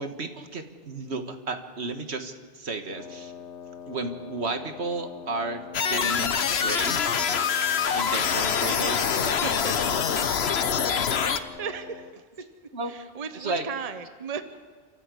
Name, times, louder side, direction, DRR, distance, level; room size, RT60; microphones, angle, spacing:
voice 1, 0.0-3.3 3.9-7.2 7.9-9.4 10.7-10.8 12.7-12.9 13.4-13.7, right 3 dB, 70° right, 7 dB, 1.9 m, -33 dB
Wind instrument woodwind instrument, 2.8-12.2, left 7 dB, 90° left, 1.4 m, -43 dB
sound 1, 5.7-11.4, left 7 dB, 65° left, 1.1 m, -25 dB
voice 2, 9.4-9.7 10.2-10.3 11.3-12.2 12.9-14.4, right 6 dB, 35° right, 9 dB, 1.0 m, -36 dB
29.5 x 14.0 x 8.3 m, 1.5 s
omnidirectional pair, 1.2 m